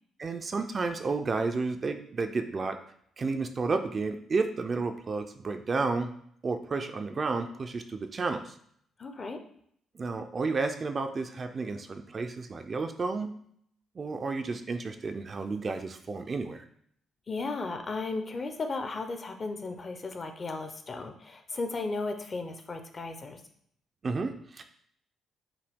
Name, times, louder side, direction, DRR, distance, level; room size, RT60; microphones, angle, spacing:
voice 1, 0.2-2.8 3.2-6.1 6.4-8.6 9.9-13.3 14.0-16.6 24.0-24.6, right 4 dB, 40° right, 6 dB, 0.4 m, -31 dB
voice 2, 9.0-9.4 17.3-23.4, left 3 dB, 35° left, 6 dB, 0.6 m, -35 dB
5.7 x 2.2 x 3.5 m, 0.67 s
cardioid pair, 90°, 0 cm